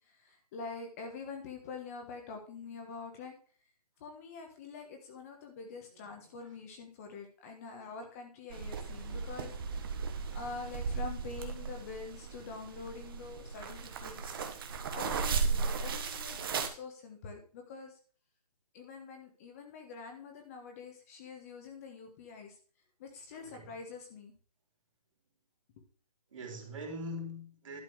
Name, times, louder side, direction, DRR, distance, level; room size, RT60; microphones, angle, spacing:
voice 1, 0.1-3.3 4.0-9.5 10.3-14.3 14.9-18.0 18.7-22.6 23.0-24.3, left 4 dB, 25° left, 1.3 m, -45 dB
voice 2, 5.7-6.3 23.3-23.7 26.3-27.8, left 1 dB, 55° right, 3.3 m, -44 dB
sound 1, 8.5-16.7, right 5 dB, 35° right, 1.1 m, -36 dB
11.5 x 4.4 x 6.3 m
hypercardioid pair, 160°, 20 cm